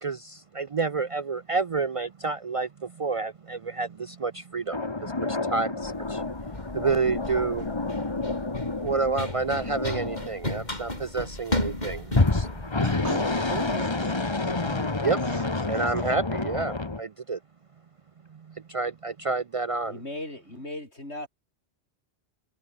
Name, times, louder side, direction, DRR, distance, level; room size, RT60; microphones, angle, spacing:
voice 1, 0.0-6.2 6.7-7.7 8.8-12.8 15.0-15.2 15.7-17.4 18.3-20.0, right 4 dB, 45° right, 0.4 m, -29 dB
sound 1, 4.7-11.1 12.1-17.0, left 3 dB, 25° left, 1.4 m, -29 dB
Run, 5.8-13.8, left 1 dB, 40° left, 5.0 m, -35 dB
voice 2, 12.8-15.0 15.2-16.1, right 2 dB, 85° right, 5.6 m, -39 dB
voice 3, 19.9-21.3, left 1 dB, 90° left, 7.8 m, -37 dB
omnidirectional pair, 1.1 m